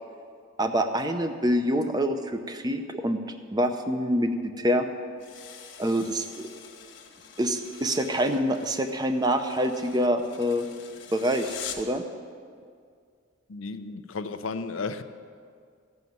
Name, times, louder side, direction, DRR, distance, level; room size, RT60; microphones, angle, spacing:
voice 1, 0.6-3.2 3.5-4.9 5.8-6.5 7.4-10.7 11.1-12.0, equal, 20° right, 7 dB, 0.6 m, -26 dB
sound 1, 5.2-12.0, left 7 dB, 65° left, 1.3 m, -44 dB
voice 2, 13.5-15.0, left 4 dB, 85° left, 10 dB, 0.6 m, -33 dB
14.5 x 5.6 x 9.3 m, 2.2 s
head